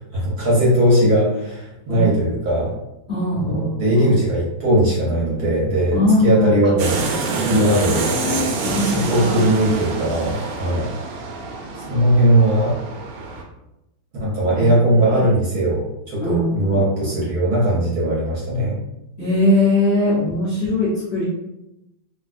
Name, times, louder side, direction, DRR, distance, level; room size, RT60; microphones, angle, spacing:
voice 1, 0.1-2.8 3.3-7.0 7.4-8.1 8.9-10.9 11.8-12.7 14.2-18.8, right 1 dB, 60° right, -6 dB, 1.1 m, -19 dB
voice 2, 1.9-2.2 3.1-4.1 5.9-6.5 7.5-9.5 14.6-15.3 16.2-16.8 19.2-21.2, left 2 dB, 75° left, -8 dB, 0.6 m, -21 dB
sound 1, 6.8-13.4, right 3 dB, 75° right, 1.3 m, -26 dB
3.3 x 2.5 x 2.4 m, 0.91 s
omnidirectional pair, 2.4 m